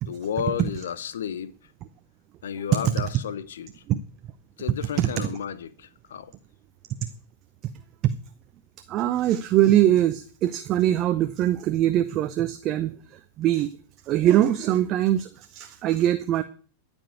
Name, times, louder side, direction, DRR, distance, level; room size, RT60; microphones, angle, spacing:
voice 1, 0.1-1.5 2.4-3.8 4.6-6.3, left 8 dB, 65° left, 0.8 m, -32 dB
voice 2, 8.9-13.7 14.0-16.4, right 12 dB, 35° right, 0.7 m, -22 dB
13.5 x 5.4 x 8.3 m
figure-of-eight pair, 90°, 0 cm